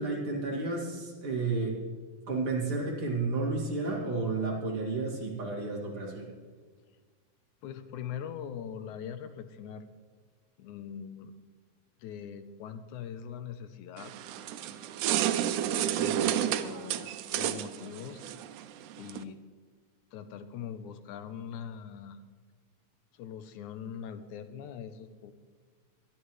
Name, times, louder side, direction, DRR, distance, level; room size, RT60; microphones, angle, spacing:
voice 1, 0.0-1.8 2.3-6.3, right 3 dB, 45° right, -2 dB, 3.1 m, -32 dB
voice 2, 7.6-9.9 10.6-11.3 12.0-14.1 15.9-18.3 19.0-19.4 20.1-22.2 23.1-25.3, left 8 dB, 80° left, 10 dB, 2.1 m, -42 dB
sound 1, 14.0-19.2, right 11 dB, 85° right, 2.1 m, -31 dB
22.0 x 11.5 x 3.2 m, 1.5 s
omnidirectional pair, 3.5 m